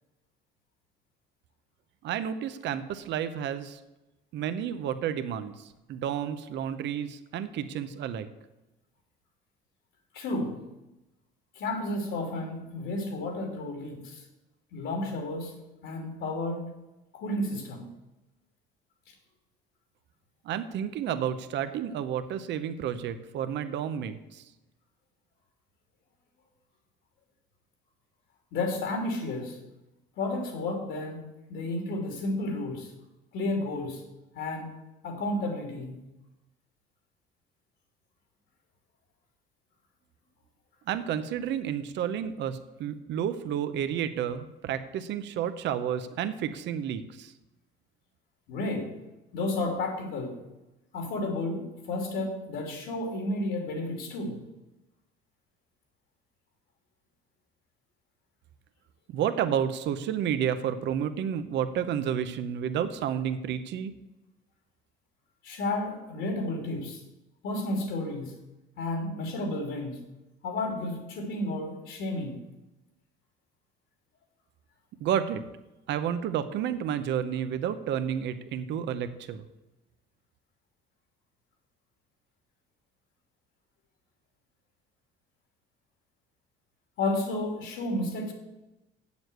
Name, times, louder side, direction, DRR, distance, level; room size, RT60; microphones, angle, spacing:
voice 1, 2.0-3.8 4.3-8.3 20.4-24.4 40.9-47.3 59.1-63.9 75.0-75.4 75.9-79.4, right 9 dB, 65° right, 11 dB, 0.9 m, -31 dB
voice 2, 10.1-10.6 11.5-14.2 14.7-15.5 15.8-16.6 17.1-17.8 28.5-29.6 30.2-31.2 31.5-32.9 33.3-34.0 34.3-34.7 35.0-36.0 48.5-48.9 49.3-50.4 50.9-54.4 65.4-67.0 67.4-68.3 68.8-70.0 70.4-72.4 87.0-88.3, left 2 dB, 70° left, 2 dB, 3.0 m, -32 dB
7.9 x 7.1 x 8.0 m, 0.98 s
cardioid pair, 115°, 20 cm